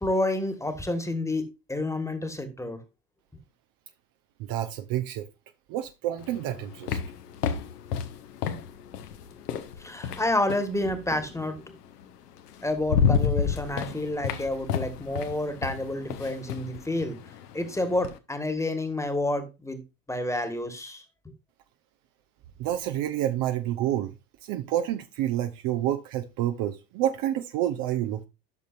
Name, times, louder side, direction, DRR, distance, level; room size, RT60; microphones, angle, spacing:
voice 1, 0.0-1.4 1.7-2.8 9.8-11.8 12.6-17.2 17.5-19.8 20.1-21.0, left 1 dB, 5° left, 1.6 m, -29 dB
voice 2, 4.4-5.3 5.7-7.0 22.6-24.1 24.4-28.3, right 12 dB, 40° right, 0.9 m, -28 dB
sound 1, 6.2-10.8 12.0-12.1 12.5-18.2, left 7 dB, 65° left, 1.2 m, -30 dB
12.0 x 6.6 x 2.6 m
figure-of-eight pair, 75°, 49 cm